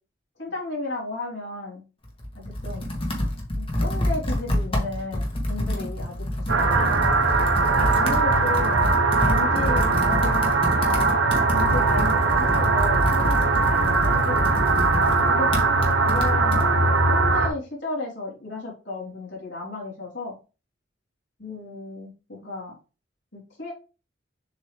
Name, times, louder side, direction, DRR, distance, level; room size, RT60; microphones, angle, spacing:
voice 1, 0.4-1.8 2.3-2.9 3.5-6.9 7.6-11.2 11.5-14.5 15.2-15.5 16.0-20.3 21.4-22.7 23.3-23.7, left 2 dB, 80° left, -6 dB, 3.3 m, -34 dB
Computer keyboard, 2.0-16.6, left 1 dB, 30° left, 1.7 m, -28 dB
sound 1, 6.5-17.5, right 3 dB, 90° right, 1.3 m, -21 dB
7.2 x 4.3 x 3.3 m, 0.32 s
head